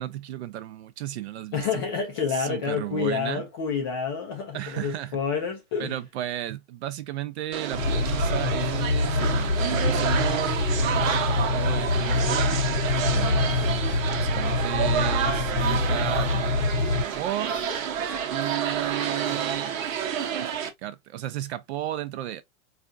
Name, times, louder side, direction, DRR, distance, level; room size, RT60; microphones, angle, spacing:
voice 1, 0.0-1.8 2.3-3.4 4.5-5.2 5.8-11.0 11.3-12.6 13.0-17.5 18.3-19.8 20.3-22.4, right 13 dB, 55° right, 0.6 m, -34 dB
voice 2, 1.5-6.0, left 6 dB, 20° left, 0.4 m, -28 dB
sound 1, 7.5-20.7, right 8 dB, 75° right, 1.0 m, -29 dB
sound 2, 7.7-17.0, left 4 dB, 60° left, 0.8 m, -25 dB
sound 3, 9.8-11.4 11.9-12.5 13.1-14.1 14.4-19.6, right 1 dB, 5° right, 0.8 m, -47 dB
4.2 x 2.4 x 2.5 m
hypercardioid pair, 155°, 40 cm